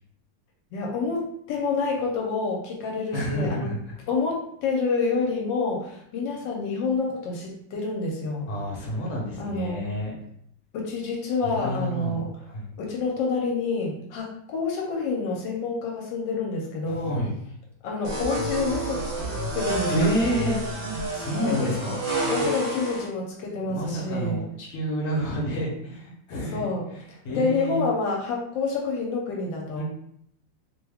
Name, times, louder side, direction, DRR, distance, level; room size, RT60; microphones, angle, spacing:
voice 1, 0.7-3.7 4.1-8.5 9.4-9.8 10.7-12.3 12.8-17.1 17.8-20.1 21.5-21.7 22.3-24.4 26.5-26.9 27.3-29.8, left 3 dB, 80° left, -1 dB, 1.3 m, -28 dB
voice 2, 3.1-4.0 8.5-10.1 11.4-12.7 16.9-17.3 19.9-20.6 21.1-22.0 23.7-27.8 29.8-29.9, equal, 45° left, -3 dB, 1.0 m, -29 dB
sound 1, 18.0-23.1, right 1 dB, 65° right, 0.5 m, -29 dB
3.1 x 2.2 x 3.4 m, 0.71 s
omnidirectional pair, 2.0 m